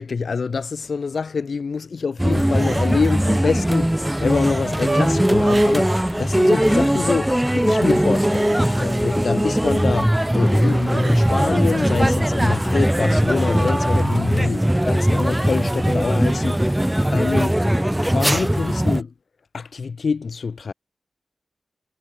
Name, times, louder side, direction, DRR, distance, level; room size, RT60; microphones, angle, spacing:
voice 1, 0.0-19.1 19.5-20.7, left 5 dB, 70° left, 1.5 m, -26 dB
sound 1, 2.2-19.0, right 1 dB, 10° right, 0.3 m, -19 dB
sound 2, 2.3-3.5 3.8-6.1 6.6-7.5 7.9-9.9 10.9-12.9 13.4-13.5, right 3 dB, 45° right, 6.5 m, -35 dB
cardioid pair, 60°, 0 cm